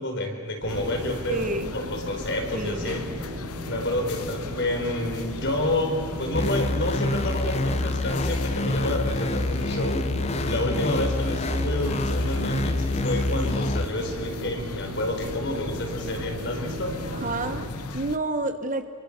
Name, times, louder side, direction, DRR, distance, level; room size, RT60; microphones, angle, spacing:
voice 1, 0.0-1.5 1.7-3.0 3.7-10.0 10.4-17.0 17.7-17.8, left 1 dB, 50° left, 2 dB, 4.7 m, -29 dB
sound 1, 0.6-17.7, equal, 75° right, 5.7 m, -36 dB
sound 2, 0.7-18.2, left 4 dB, 80° left, 0.9 m, -40 dB
voice 2, 1.3-1.7 2.5-3.0 17.1-17.7 17.9-18.8, right 2 dB, 35° right, 9 dB, 1.2 m, -29 dB
sound 3, 6.3-13.9, left 2 dB, 30° left, 0.7 m, -27 dB
28.5 x 24.0 x 6.7 m, 2.3 s
head